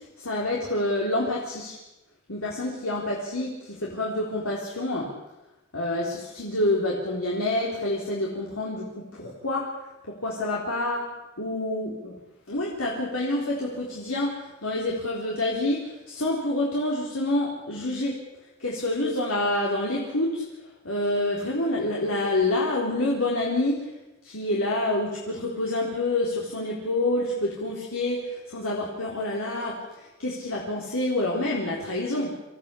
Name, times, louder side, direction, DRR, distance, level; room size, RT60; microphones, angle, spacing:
voice 1, 0.0-1.8 2.3-5.1 5.7-9.7 10.1-11.0 11.4-12.1 12.5-18.2 18.6-23.9 24.2-32.3, left 1 dB, 70° left, -3 dB, 3.9 m, -27 dB
26.5 x 15.5 x 8.5 m, 1.0 s
head